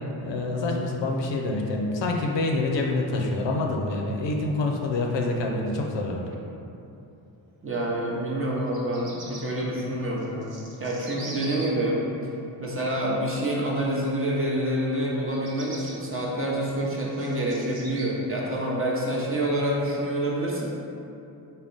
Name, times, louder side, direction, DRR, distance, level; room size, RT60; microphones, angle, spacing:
voice 1, 0.2-6.3, left 2 dB, 65° left, 1 dB, 0.6 m, -26 dB
voice 2, 7.6-12.0 12.6-20.7, right 1 dB, 25° right, -4 dB, 0.8 m, -27 dB
Bird vocalization bird call bird song, 8.6-9.4 10.2-11.7 15.2-15.9 16.6-18.1, right 2 dB, 65° right, 0.9 m, -42 dB
3.5 x 2.2 x 3.9 m, 2.7 s
supercardioid pair, 50°, 49 cm